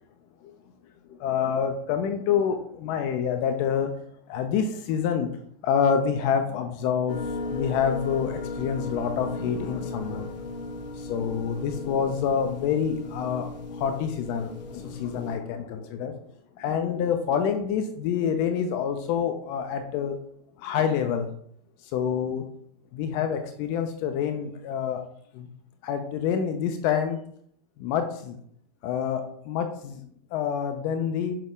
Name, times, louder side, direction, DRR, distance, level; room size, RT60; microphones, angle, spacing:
voice 1, 1.1-3.9 4.3-5.3 5.6-7.2 7.5-10.3 11.0-16.1 16.6-20.2 20.6-21.3 21.9-22.4 22.9-25.0 25.3-25.5 25.8-27.2 27.8-28.4 28.8-30.0 30.3-31.4, left 7 dB, 35° left, 6 dB, 0.4 m, -27 dB
sound 1, 7.1-15.4, left 2 dB, 90° left, 0.9 m, -36 dB
6.5 x 2.3 x 3.6 m, 0.64 s
supercardioid pair, 150°, 21 cm